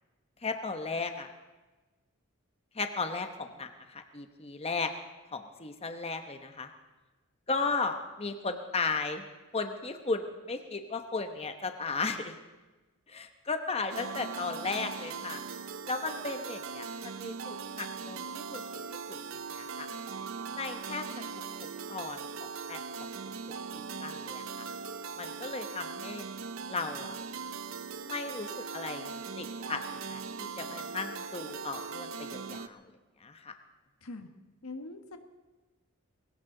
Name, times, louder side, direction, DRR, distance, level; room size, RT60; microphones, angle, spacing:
voice 1, 0.4-1.3 2.7-4.9 5.3-6.7 7.5-9.2 9.5-12.4 13.1-15.4 15.9-18.6 18.9-19.2 19.5-19.9 20.5-21.1 21.9-22.8 23.7-24.6 25.2-26.3 26.7-27.2 28.0-29.8 30.1-32.8 33.2-33.5, left 4 dB, 30° left, 6 dB, 1.0 m, -35 dB
sound 1, 13.9-32.7, right 5 dB, 65° right, 0.7 m, -40 dB
voice 2, 34.6-35.2, left 2 dB, 90° left, 6 dB, 1.5 m, -42 dB
21.0 x 17.5 x 3.9 m, 1.2 s
head